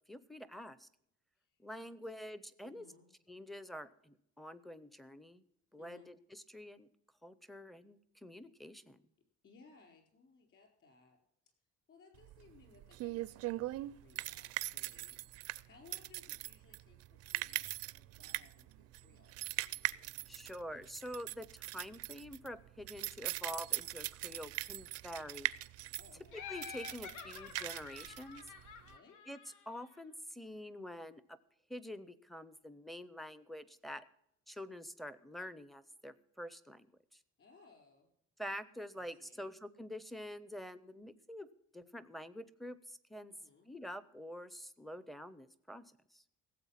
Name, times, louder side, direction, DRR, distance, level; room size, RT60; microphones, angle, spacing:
voice 1, 0.1-0.9 1.6-2.8 3.3-5.4 5.7-6.9 7.2-9.0 20.3-25.5 26.3-28.5 29.3-29.4 29.7-31.4 31.7-34.0 34.5-36.9 37.1-37.2 38.4-41.5 41.7-43.3 43.7-46.2, equal, ahead, 13 dB, 0.5 m, -47 dB
voice 2, 2.6-3.1 5.8-6.1 9.4-11.2 11.9-19.4 20.3-20.5 21.7-21.9 24.2-24.5 26.0-26.4 28.9-29.2 37.4-38.1 39.0-39.6 43.3-43.7, left 4 dB, 45° left, 3 dB, 4.4 m, -63 dB
sound 1, 12.2-28.9, right 17 dB, 55° right, 0.4 m, -41 dB
Laughter, 26.3-30.0, left 7 dB, 80° left, 1.4 m, -49 dB
16.0 x 7.8 x 5.7 m, 0.77 s
cardioid pair, 150°, 29 cm